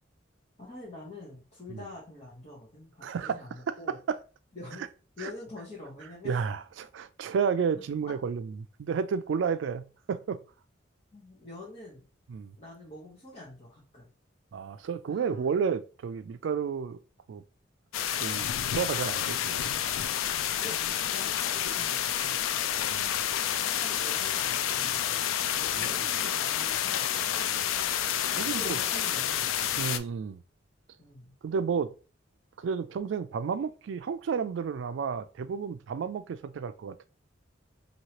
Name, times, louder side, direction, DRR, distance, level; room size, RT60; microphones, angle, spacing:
voice 1, 0.6-4.0 4.5-4.9 5.2-6.4 11.1-12.1 12.6-14.1 15.1-15.5 20.6-22.9 23.5-27.6 28.2-29.7 31.0-31.3, left 2 dB, 35° left, 1.0 m, -46 dB
voice 2, 3.0-3.4 4.1-4.2 5.2-5.3 6.2-10.4 12.3-12.5 14.5-17.0 17.3-17.4 18.2-19.7 20.0-20.1 22.9-23.2 25.7-25.9 28.4-28.8 29.8-30.4 31.4-31.9 32.6-37.1, right 6 dB, 70° right, 0.3 m, -31 dB
sound 1, 17.9-30.0, left 10 dB, 90° left, 0.3 m, -29 dB
3.0 x 2.7 x 2.9 m
head